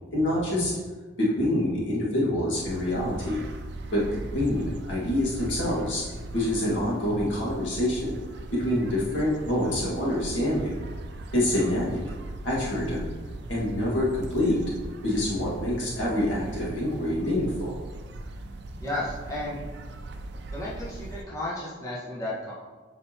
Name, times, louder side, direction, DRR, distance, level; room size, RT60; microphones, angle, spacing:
voice 1, 0.1-0.7 1.2-3.4 3.9-4.0 4.3-6.0 6.3-8.1 8.5-10.7 11.3-12.0 12.4-13.1 13.5-14.6 15.0-17.7, left 1 dB, 85° left, -6 dB, 2.0 m, -26 dB
sound 1, 2.5-21.2, right 2 dB, 60° right, 0.5 m, -39 dB
voice 2, 18.8-19.6 20.5-22.5, left 1 dB, 20° left, -8 dB, 1.5 m, -33 dB
7.5 x 5.3 x 3.0 m, 1.3 s
head